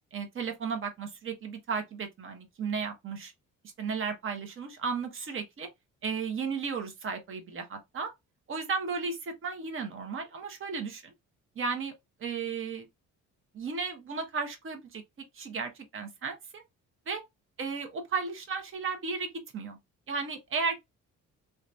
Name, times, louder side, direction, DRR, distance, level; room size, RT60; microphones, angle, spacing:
voice 1, 0.1-3.3 3.8-5.7 6.0-8.1 8.5-11.1 11.6-11.9 12.2-12.9 13.5-16.6 17.1-17.2 17.6-19.8 20.1-20.7, right 5 dB, 40° right, 0.9 m, -34 dB
2.7 x 2.3 x 2.5 m
cardioid pair, 95°, 32 cm